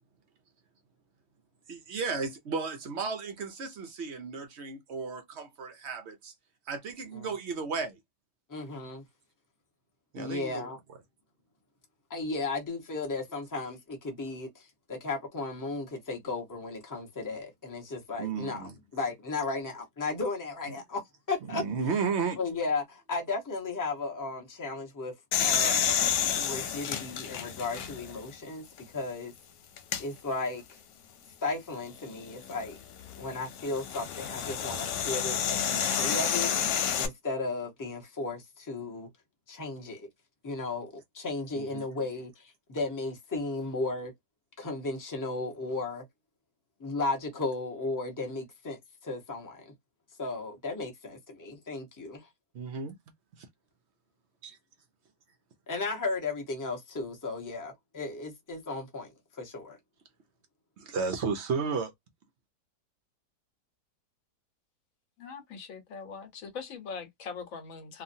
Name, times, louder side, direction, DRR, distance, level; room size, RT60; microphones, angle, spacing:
voice 1, 1.7-6.3 6.7-8.0 10.1-10.7 18.2-18.7 21.5-22.4 41.6-41.8 52.5-53.0 54.4-54.6 60.8-61.9, right 5 dB, 70° right, 0.6 m, -33 dB
voice 2, 8.5-9.0 10.2-10.8 12.1-21.6 22.4-25.1 25.4-25.9 26.3-28.6 28.9-29.3 30.0-30.8 31.4-32.8 33.1-39.1 39.5-40.1 40.4-44.1 44.6-46.0 46.8-49.7 50.2-52.3 55.7-59.8, left 3 dB, 20° left, 0.6 m, -35 dB
sound 1, 25.3-28.2 28.8-28.9 29.8-30.0 32.2-37.1, left 8 dB, 85° left, 1.3 m, -30 dB
voice 3, 65.2-68.0, left 5 dB, 60° left, 1.2 m, -41 dB
3.0 x 2.4 x 2.6 m
omnidirectional pair, 1.8 m